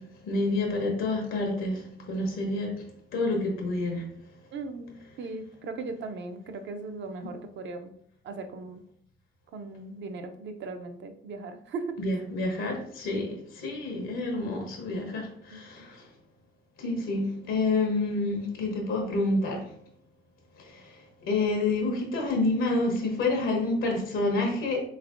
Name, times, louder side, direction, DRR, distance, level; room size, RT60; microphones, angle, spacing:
voice 1, 0.2-2.8 3.1-4.0 12.0-16.0 16.8-19.7 20.6-20.9 21.3-24.8, left 2 dB, 90° left, 1 dB, 0.9 m, -28 dB
voice 2, 4.5-7.9 8.2-8.8 9.5-11.8 15.5-15.6, right 3 dB, 65° right, 6 dB, 0.5 m, -38 dB
3.4 x 3.2 x 2.5 m, 0.63 s
cardioid pair, 90°, 20 cm